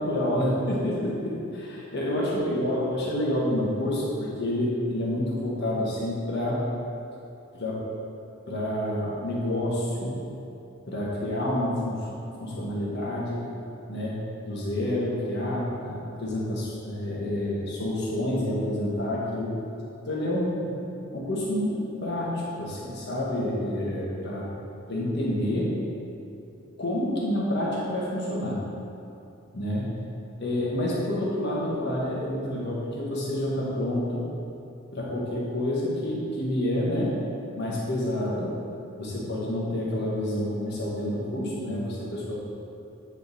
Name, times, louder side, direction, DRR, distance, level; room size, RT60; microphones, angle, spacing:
voice 1, 0.0-6.6 7.5-7.8 8.5-10.2 10.9-12.1 12.4-13.5 13.9-19.6 20.1-20.8 21.1-24.5 24.9-25.7 26.8-28.6 29.5-29.9 30.4-34.2 34.9-37.2 37.5-38.5 39.0-42.4, left 1 dB, 50° left, -6 dB, 1.5 m, -28 dB
9.0 x 3.6 x 4.2 m, 2.7 s
head